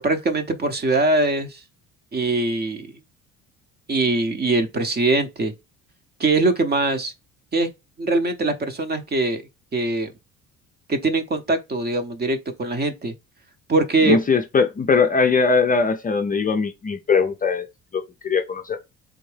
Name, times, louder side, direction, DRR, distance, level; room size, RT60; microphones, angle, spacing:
voice 1, 0.0-1.6 2.1-2.9 3.9-5.5 6.2-7.1 7.5-7.7 8.0-9.4 9.7-10.1 10.9-13.1 13.7-14.2, right 2 dB, 30° right, 0.7 m, -22 dB
voice 2, 14.0-17.7 17.9-18.8, left 5 dB, 25° left, 0.5 m, -20 dB
3.5 x 2.6 x 3.2 m
supercardioid pair, 80°, 33 cm